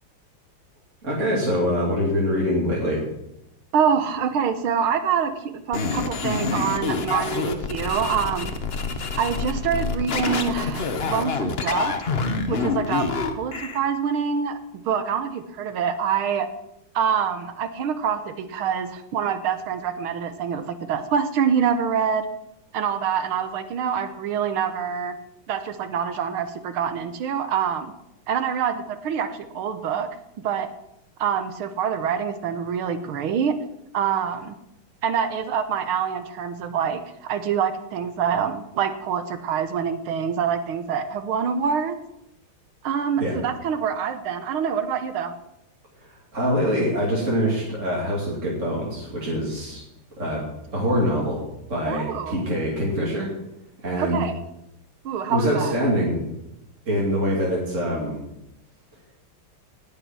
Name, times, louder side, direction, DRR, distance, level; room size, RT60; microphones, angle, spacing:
voice 1, 1.0-3.0 43.2-43.4 46.3-49.8 50.2-50.4 50.7-51.4 51.7-53.3 53.8-54.2 55.3-56.2 56.8-58.2, equal, 35° right, -5 dB, 3.2 m, -24 dB
voice 2, 3.7-8.5 9.2-12.0 12.5-13.1 13.3-14.6 14.9-16.5 17.0-22.3 22.7-25.1 25.5-27.9 28.3-30.1 30.4-30.7 31.2-33.5 33.9-34.5 35.0-42.0 42.8-45.3 51.9-52.5 54.0-54.4 55.1-55.7, right 7 dB, 80° right, 9 dB, 1.9 m, -25 dB
sound 1, 5.7-13.8, left 4 dB, 40° left, 0.9 m, -27 dB
18.5 x 6.9 x 6.2 m, 0.87 s
omnidirectional pair, 2.3 m